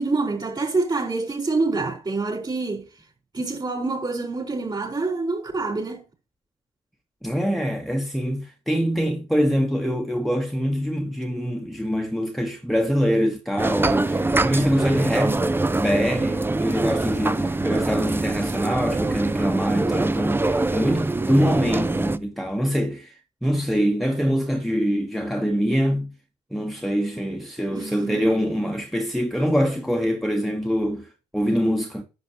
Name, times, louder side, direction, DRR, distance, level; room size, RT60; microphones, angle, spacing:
voice 1, 0.0-2.9 3.3-6.0 27.7-28.4 28.6-28.7, right 3 dB, 35° right, 4.7 m, -26 dB
voice 2, 7.2-15.5 15.7-26.1 26.5-32.0, equal, ahead, 1.3 m, -24 dB
sound 1, 13.6-22.2, right 2 dB, 15° right, 0.6 m, -24 dB
11.0 x 6.6 x 2.9 m
hypercardioid pair, 45°, 14 cm